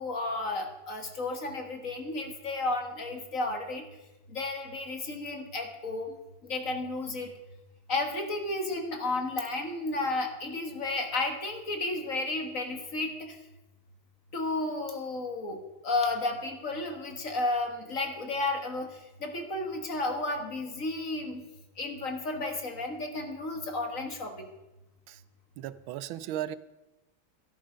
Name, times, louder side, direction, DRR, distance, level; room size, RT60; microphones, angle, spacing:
voice 1, 0.0-3.9 4.3-7.3 7.9-13.4 14.3-21.5 21.8-24.5, left 2 dB, 45° left, 4 dB, 1.9 m, -33 dB
voice 2, 25.6-26.6, right 12 dB, 90° right, 16 dB, 1.4 m, -36 dB
13.0 x 11.0 x 5.1 m, 0.99 s
omnidirectional pair, 2.2 m